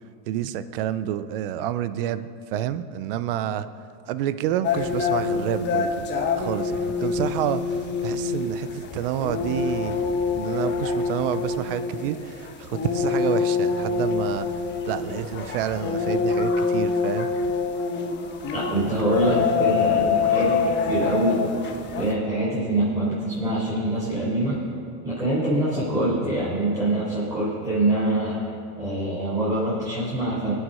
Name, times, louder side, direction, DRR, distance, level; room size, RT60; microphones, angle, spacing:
voice 1, 0.3-3.7 4.1-14.6 14.9-17.3, right 11 dB, 40° right, 13 dB, 0.4 m, -29 dB
sound 1, 4.6-22.1, left 5 dB, 20° left, 1.1 m, -26 dB
voice 2, 18.5-21.4 22.0-24.6 25.0-28.4 28.8-30.5, right 1 dB, 5° right, -10 dB, 4.1 m, -24 dB
23.0 x 7.9 x 5.5 m, 2.4 s
supercardioid pair, 150°, 49 cm